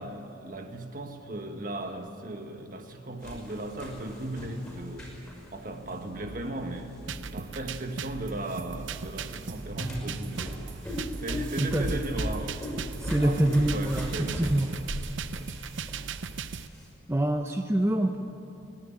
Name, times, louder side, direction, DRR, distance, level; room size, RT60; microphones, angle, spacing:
voice 1, 0.0-5.2 5.5-7.0 7.3-10.6 11.2-12.9 13.2-15.0 15.3-15.6 16.1-16.2, right 1 dB, 45° right, 5 dB, 1.6 m, -37 dB
sound 1, 3.2-16.9, equal, 5° left, 5.7 m, -38 dB
sound 2, 7.1-16.7, right 5 dB, 80° right, 0.7 m, -38 dB
voice 2, 11.6-12.0 13.0-14.7 17.1-18.2, right 1 dB, 15° right, 4 dB, 0.7 m, -26 dB
29.0 x 11.0 x 8.9 m, 2.7 s
head